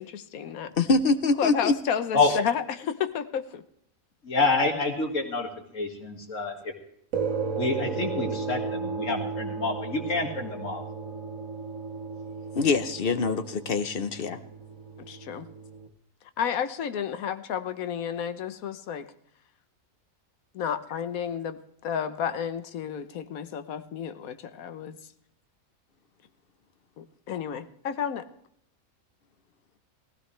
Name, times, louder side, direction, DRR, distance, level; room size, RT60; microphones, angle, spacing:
voice 1, 0.0-0.7 1.4-3.6 15.1-15.5 16.4-19.1 20.5-25.0 27.0-28.3, left 8 dB, 90° left, 11 dB, 1.3 m, -31 dB
voice 2, 0.8-1.8 12.5-14.4, left 3 dB, 50° left, 11 dB, 0.8 m, -24 dB
voice 3, 4.2-5.5 5.7-6.6 7.5-10.8, left 3 dB, 65° left, 3 dB, 2.4 m, -27 dB
sound 1, 7.1-15.9, right 5 dB, 70° right, 1.3 m, -34 dB
18.0 x 15.5 x 3.2 m, 0.72 s
omnidirectional pair, 1.4 m